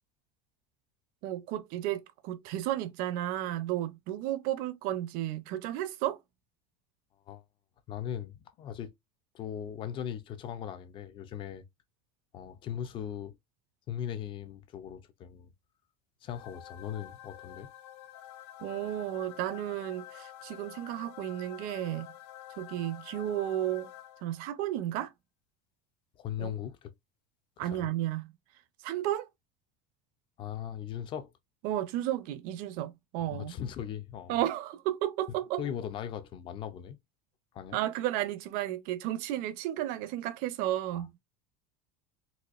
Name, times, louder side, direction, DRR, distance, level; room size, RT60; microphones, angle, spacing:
voice 1, 1.2-6.2 18.6-22.1 22.6-23.9 24.2-25.1 26.4-26.5 27.6-28.3 28.8-29.3 31.6-33.5 34.3-35.6 37.7-41.2, right 13 dB, 45° right, 0.5 m, -33 dB
voice 2, 7.9-8.9 9.3-11.6 12.3-13.4 13.9-15.5 16.2-17.7 26.2-26.9 27.6-27.9 30.4-31.3 33.3-34.4 35.6-37.0 37.5-37.8 40.9-41.0, left 9 dB, 25° left, 0.4 m, -39 dB
sound 1, 16.3-24.6, left 12 dB, 90° left, 0.6 m, -49 dB
4.1 x 2.6 x 2.4 m
cardioid pair, 175°, 20 cm